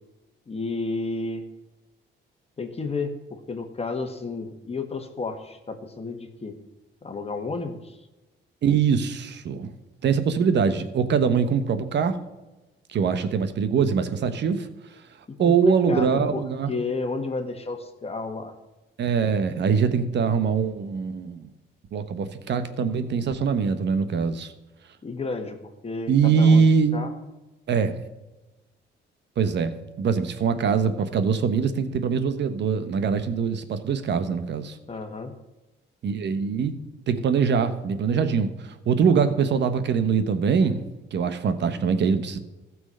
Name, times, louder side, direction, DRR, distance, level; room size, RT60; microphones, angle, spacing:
voice 1, 0.5-1.4 2.6-6.5 7.0-8.0 15.3-16.4 16.7-18.5 25.0-25.6 25.8-26.6 26.9-27.1 34.9-35.3, left 3 dB, 30° left, 5 dB, 1.6 m, -31 dB
voice 2, 8.6-9.7 10.0-12.2 12.9-14.7 15.4-16.7 19.0-21.5 21.9-24.5 26.1-27.0 27.7-28.0 29.4-29.7 30.0-34.8 36.0-36.7 37.1-40.8 41.1-42.4, right 6 dB, 60° right, 10 dB, 1.2 m, -23 dB
14.5 x 6.3 x 5.5 m, 1.1 s
cardioid pair, 90°, 20 cm